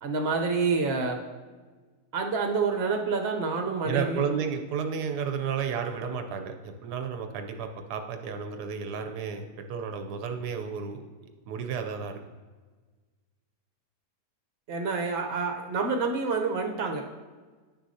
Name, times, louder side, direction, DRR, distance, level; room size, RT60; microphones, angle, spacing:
voice 1, 0.0-1.2 2.1-4.2 14.7-17.1, right 4 dB, 45° right, 3 dB, 1.0 m, -28 dB
voice 2, 3.8-12.2, right 6 dB, 85° right, 6 dB, 1.2 m, -32 dB
10.5 x 6.4 x 2.7 m, 1.4 s
omnidirectional pair, 1.7 m